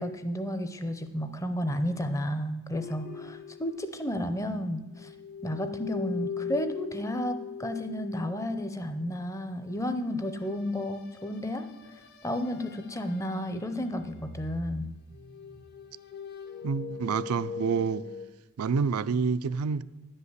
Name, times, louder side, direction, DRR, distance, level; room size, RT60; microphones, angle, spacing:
voice 1, 0.0-5.1 5.4-11.7 12.2-14.9, equal, 15° left, 9 dB, 0.6 m, -32 dB
sound 1, 2.7-4.7 4.9-8.8 10.4-13.6 13.9-18.3, left 6 dB, 45° left, 0.8 m, -41 dB
voice 2, 16.6-18.0 18.6-19.8, right 5 dB, 80° right, 14 dB, 0.4 m, -28 dB
10.5 x 5.5 x 8.0 m, 1.1 s
head